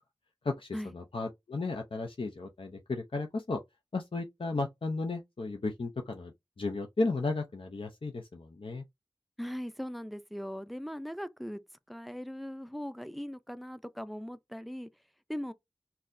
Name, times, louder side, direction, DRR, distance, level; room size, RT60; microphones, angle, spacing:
voice 1, 0.4-3.6 3.9-8.8, left 3 dB, 85° left, 0.5 m, -34 dB
voice 2, 9.4-11.6 11.9-14.9 15.3-15.5, equal, ahead, 0.4 m, -39 dB
3.9 x 2.7 x 2.5 m
wide cardioid pair, 50°, 9 cm